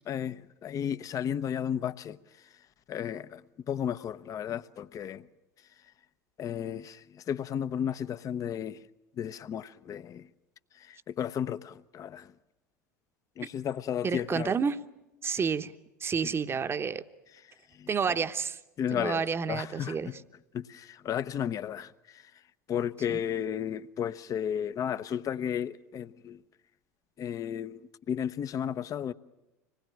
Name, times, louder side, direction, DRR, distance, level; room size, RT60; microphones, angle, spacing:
voice 1, 0.1-2.2 2.9-5.3 6.4-8.8 9.2-10.3 10.7-12.3 13.4-14.5 16.2-16.3 17.7-17.9 18.8-20.1 20.5-22.2 22.7-26.4 27.2-29.1, left 9 dB, 40° left, 0.9 m, -33 dB
voice 2, 14.0-14.8 15.2-15.7 16.0-17.1 17.9-18.6 18.9-20.1 23.1-23.2, right 6 dB, 25° right, 1.0 m, -30 dB
25.5 x 20.0 x 8.8 m
hypercardioid pair, 80°, 9 cm